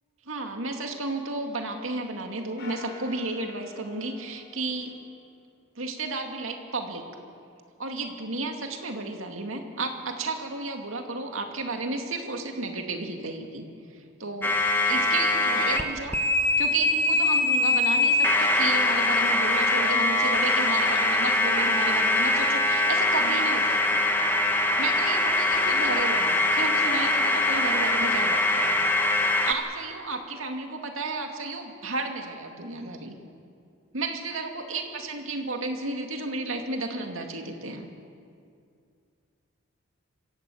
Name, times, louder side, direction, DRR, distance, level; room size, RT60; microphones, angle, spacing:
voice 1, 0.3-5.0 5.8-7.1 7.8-13.7 13.9-14.6 14.9-16.2 16.6-24.0 24.8-28.9 29.5-33.1 33.9-37.9, right 3 dB, 75° right, 4 dB, 2.3 m, -33 dB
sound 1, 2.6-5.3, left 3 dB, 60° left, 4.3 m, -46 dB
sound 2, 14.4-15.8 16.1-29.5, left 2 dB, 10° left, 1.2 m, -23 dB
25.0 x 14.0 x 8.5 m, 2.3 s
head